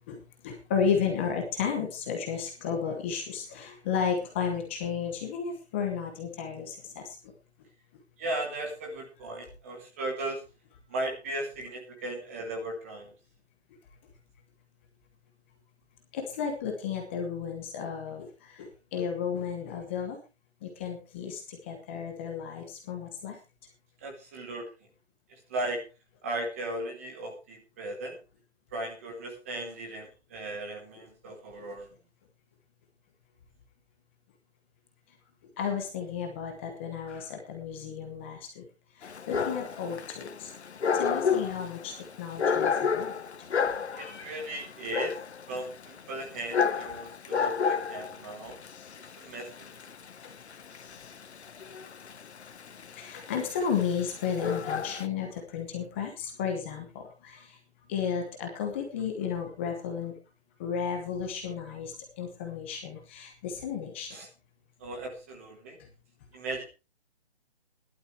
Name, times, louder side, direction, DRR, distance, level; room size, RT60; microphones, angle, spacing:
voice 1, 0.1-7.2 16.1-20.2 20.6-23.4 35.6-38.6 39.0-40.5 40.9-43.2 43.9-44.3 53.0-57.6 57.9-60.1 60.6-64.2, left 7 dB, 10° left, 2 dB, 1.0 m, -33 dB
voice 2, 8.2-10.4 10.9-13.1 24.0-24.7 25.5-25.9 26.2-28.2 28.7-31.9 43.9-45.2 45.5-48.6 49.2-49.7 64.1-64.3 64.8-65.8 66.3-66.6, right 1 dB, 15° right, 3 dB, 1.0 m, -36 dB
Dog, 39.0-55.1, left 6 dB, 80° left, 1.2 m, -31 dB
16.5 x 11.5 x 3.1 m, 0.29 s
hypercardioid pair, 170°, 33 cm